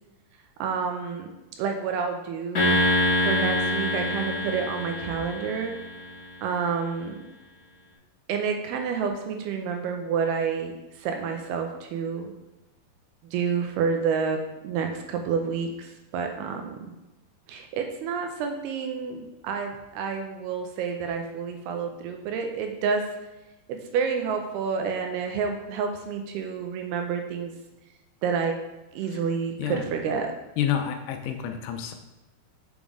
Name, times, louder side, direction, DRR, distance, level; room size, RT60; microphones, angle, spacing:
voice 1, 0.6-1.3 1.6-2.8 3.2-5.7 6.4-7.2 8.3-12.3 13.2-16.9 17.5-23.0 23.7-27.5 28.2-28.5 28.9-30.3, right 6 dB, 80° right, 4 dB, 2.5 m, -29 dB
sound 1, 2.5-6.0, left 1 dB, 65° left, 0.9 m, -25 dB
voice 2, 30.6-31.9, left 9 dB, 85° left, 6 dB, 2.8 m, -28 dB
7.1 x 6.1 x 3.5 m, 1.0 s
omnidirectional pair, 4.8 m